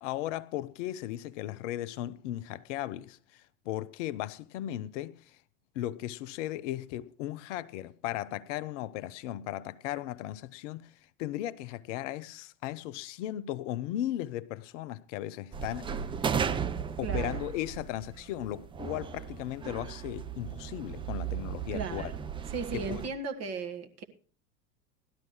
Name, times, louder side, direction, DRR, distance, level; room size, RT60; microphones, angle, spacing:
voice 1, 0.0-3.2 3.7-5.2 5.7-10.9 11.2-16.0 17.0-22.1 22.7-23.0, left 13 dB, 50° left, 0.7 m, -36 dB
sound 1, 15.5-23.1, right 7 dB, 10° right, 0.5 m, -35 dB
voice 2, 17.0-17.4 21.7-22.2 22.5-24.0, right 5 dB, 30° right, 1.6 m, -36 dB
17.5 x 12.0 x 3.1 m
figure-of-eight pair, 85°, 48 cm